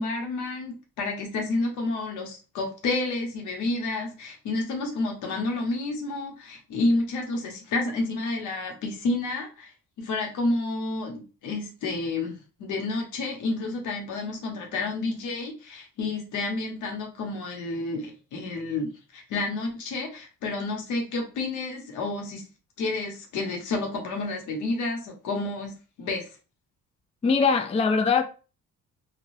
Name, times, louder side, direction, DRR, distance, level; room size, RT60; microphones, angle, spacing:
voice 1, 0.0-9.7 10.0-22.5 22.8-26.2, left 2 dB, 85° left, 1.0 m, -30 dB
voice 2, 27.2-28.2, left 5 dB, 20° left, 0.4 m, -21 dB
3.2 x 2.3 x 2.6 m
cardioid pair, 90°, 30 cm